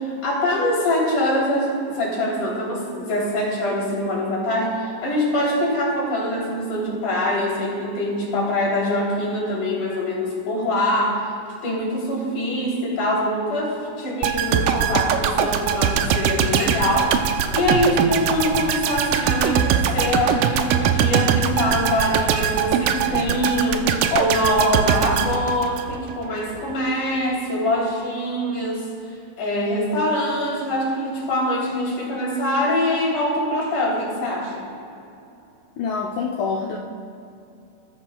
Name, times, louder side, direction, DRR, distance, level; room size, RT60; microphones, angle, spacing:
voice 1, 0.0-11.3 11.6-28.8 29.4-34.7, left 1 dB, 55° left, -4 dB, 4.6 m, -24 dB
sound 1, 14.2-26.2 26.6-26.7, right 8 dB, 80° right, 1.9 m, -22 dB
voice 2, 35.8-36.8, left 5 dB, 80° left, 0 dB, 1.6 m, -26 dB
23.0 x 14.5 x 2.3 m, 2.8 s
omnidirectional pair, 4.3 m